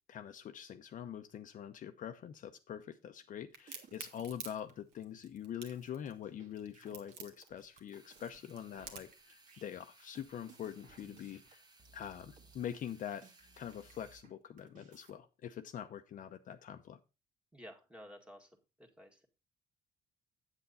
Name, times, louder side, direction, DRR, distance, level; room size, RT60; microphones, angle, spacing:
voice 1, 0.1-11.6 11.9-13.2 13.6-17.0, left 9 dB, 50° left, 7 dB, 0.7 m, -44 dB
sound 1, 3.5-4.7 5.0-5.1 5.4-14.3 14.6-15.1, right 5 dB, 50° right, 2.1 m, -62 dB
Crack, 3.5-9.2, right 6 dB, 75° right, 1.8 m, -49 dB
sound 2, 7.9-14.2, right 3 dB, 25° right, 1.3 m, -63 dB
voice 2, 17.5-18.5 18.8-19.3, equal, 5° right, 2 dB, 1.9 m, -53 dB
8.2 x 8.0 x 4.1 m, 0.28 s
cardioid pair, 110°, 17 cm